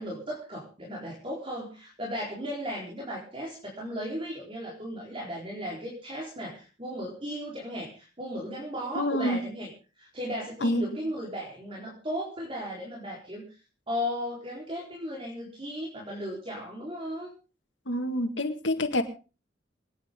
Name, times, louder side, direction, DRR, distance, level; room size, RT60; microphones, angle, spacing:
voice 1, 0.0-9.7 10.0-13.4 13.9-17.3, equal, 30° right, -3 dB, 4.3 m, -36 dB
voice 2, 9.0-9.4 10.6-10.8 17.9-19.0, left 1 dB, 90° left, 6 dB, 2.2 m, -27 dB
26.5 x 10.0 x 3.8 m, 0.34 s
head